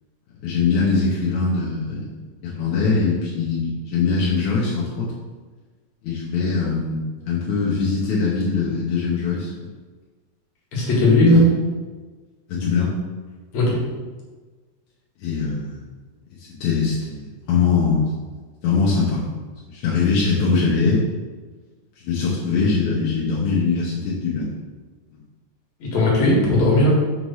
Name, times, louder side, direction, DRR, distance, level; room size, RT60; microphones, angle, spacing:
voice 1, 0.4-2.1 2.4-5.1 6.0-9.7 11.3-11.5 12.5-12.9 15.2-15.8 16.4-18.1 18.6-19.4 19.7-21.0 22.0-24.5 25.1-25.2, left 4 dB, 85° left, -6 dB, 2.4 m, -22 dB
voice 2, 10.7-11.4 13.5-13.8 25.8-26.9, left 1 dB, 65° left, -4 dB, 2.8 m, -16 dB
6.5 x 3.1 x 5.5 m, 1.4 s
omnidirectional pair, 3.3 m